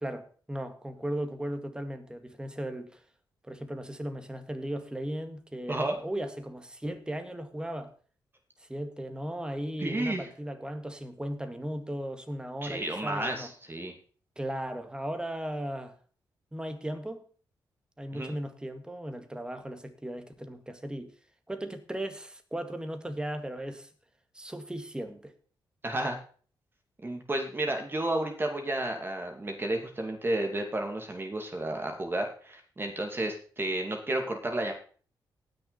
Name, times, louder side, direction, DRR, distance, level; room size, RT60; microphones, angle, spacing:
voice 1, 0.0-3.0 3.5-7.9 8.6-13.5 14.4-16.0 16.5-17.2 18.0-21.1 21.5-23.9 24.3-25.3, right 1 dB, 10° right, 2.0 m, -36 dB
voice 2, 9.8-10.3 12.6-13.9 18.1-18.3 25.8-26.2 27.0-34.7, right 1 dB, 25° right, 2.6 m, -32 dB
18.5 x 6.6 x 4.2 m
cardioid pair, 75°, 8 cm